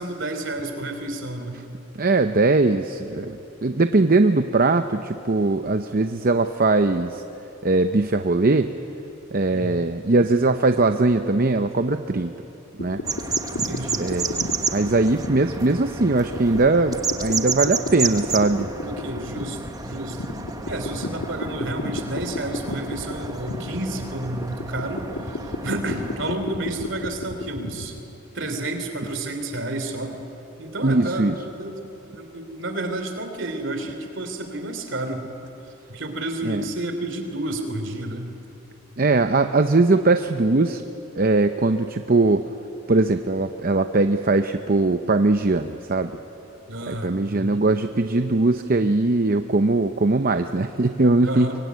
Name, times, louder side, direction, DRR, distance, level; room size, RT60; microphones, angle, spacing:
voice 1, 0.0-1.6 9.5-9.9 13.5-14.0 18.8-20.4 20.7-28.0 28.3-30.2 30.6-31.8 32.1-35.3 35.9-38.3 46.7-47.7 51.2-51.6, right 1 dB, 60° right, 6 dB, 3.2 m, -31 dB
voice 2, 2.0-7.2 7.6-8.7 9.3-12.3 12.8-13.0 14.0-18.7 30.8-31.4 36.4-36.6 39.0-40.8 41.1-42.4 42.9-46.1 46.9-51.5, right 3 dB, 45° right, 8 dB, 0.7 m, -20 dB
sound 1, 12.8-28.0, left 2 dB, 65° left, 1.7 m, -34 dB
sound 2, 13.0-26.3, right 4 dB, 15° right, 1.0 m, -31 dB
24.5 x 22.5 x 9.4 m, 3.0 s
head